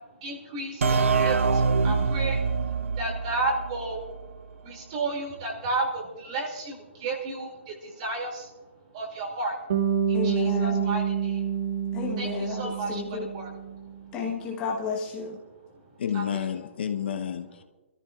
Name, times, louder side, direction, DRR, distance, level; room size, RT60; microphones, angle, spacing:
voice 1, 0.2-2.4 2.9-4.0 4.6-8.5 8.9-9.6 10.1-11.4 12.2-12.3 12.6-13.5 16.1-16.4, right 2 dB, 30° right, 2 dB, 2.4 m, -32 dB
sound 1, 0.8-4.4, right 4 dB, 85° right, 0.6 m, -25 dB
Bass guitar, 9.7-14.0, right 8 dB, 45° right, 1.4 m, -28 dB
voice 2, 10.1-11.0 11.9-13.3 14.1-15.4, left 5 dB, 15° left, -1 dB, 1.0 m, -32 dB
voice 3, 16.0-17.6, left 8 dB, 55° left, 8 dB, 0.8 m, -30 dB
25.0 x 13.5 x 2.4 m, 1.2 s
hypercardioid pair, 170°, 7 cm